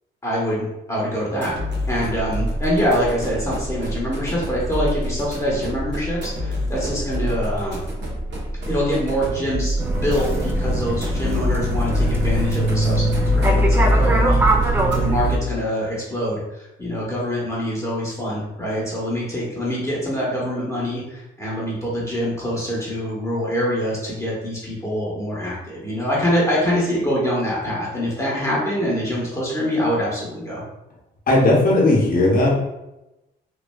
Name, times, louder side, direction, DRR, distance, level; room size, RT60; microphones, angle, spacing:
voice 1, 0.2-1.5 1.9-7.8 8.7-30.6, equal, 15° left, -6 dB, 0.9 m, -25 dB
sound 1, 1.3-15.3, equal, 65° right, 0.8 m, -28 dB
sound 2, 9.8-15.4, equal, 10° right, 0.3 m, -20 dB
voice 2, 31.3-32.6, left 2 dB, 45° left, -3 dB, 0.9 m, -16 dB
3.1 x 2.3 x 2.2 m, 0.94 s
cardioid pair, 90°, 20 cm